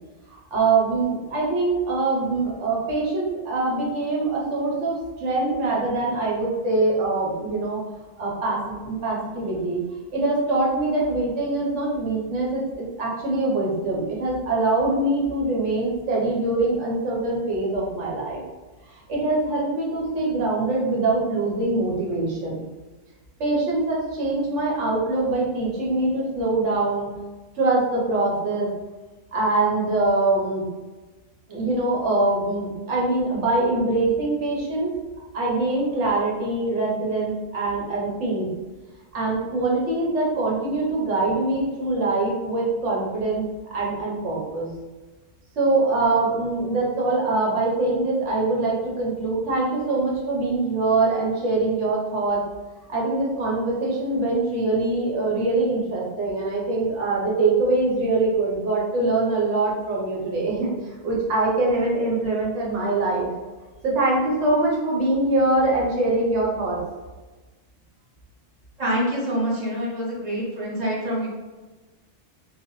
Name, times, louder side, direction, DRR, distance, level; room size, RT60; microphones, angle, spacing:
voice 1, 0.5-7.8 8.2-9.8 10.1-18.4 18.8-22.6 23.4-27.1 27.5-28.7 29.3-30.6 31.5-34.9 35.3-38.5 39.1-43.4 43.7-44.7 45.6-52.4 52.9-63.3 63.8-66.8, right 2 dB, 75° right, -4 dB, 1.2 m, -23 dB
voice 2, 68.8-71.3, equal, 40° right, -5 dB, 0.9 m, -26 dB
2.9 x 2.0 x 3.1 m, 1.2 s
omnidirectional pair, 1.3 m